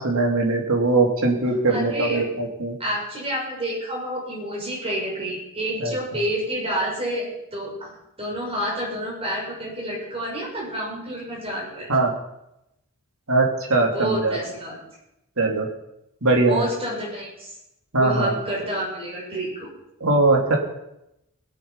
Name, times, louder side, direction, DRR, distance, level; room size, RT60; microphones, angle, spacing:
voice 1, 0.0-2.7 5.8-5.9 11.9-12.1 13.3-14.4 15.4-15.7 16.2-16.6 17.9-18.3 20.0-20.6, right 2 dB, 65° right, 0 dB, 3.1 m, -20 dB
voice 2, 1.7-2.3 2.8-11.9 13.9-14.8 16.4-17.6 18.0-19.7, right 1 dB, 25° right, -3 dB, 5.9 m, -29 dB
20.0 x 8.9 x 5.6 m, 0.84 s
head